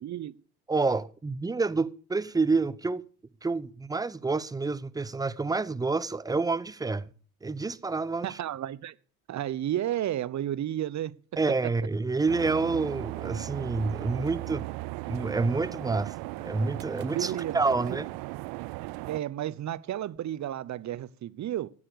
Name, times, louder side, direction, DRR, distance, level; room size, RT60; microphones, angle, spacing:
voice 1, 0.0-0.3 8.2-8.9 9.3-11.1 17.1-17.5 17.8-18.0 19.1-21.7, right 12 dB, 35° right, 1.0 m, -32 dB
voice 2, 0.7-3.0 3.4-7.1 7.4-8.4 11.4-14.6 15.1-18.1, right 3 dB, 10° right, 0.7 m, -28 dB
sound 1, 12.3-19.2, right 23 dB, 55° right, 0.6 m, -37 dB
14.5 x 8.6 x 6.8 m
hypercardioid pair, 75°, 46 cm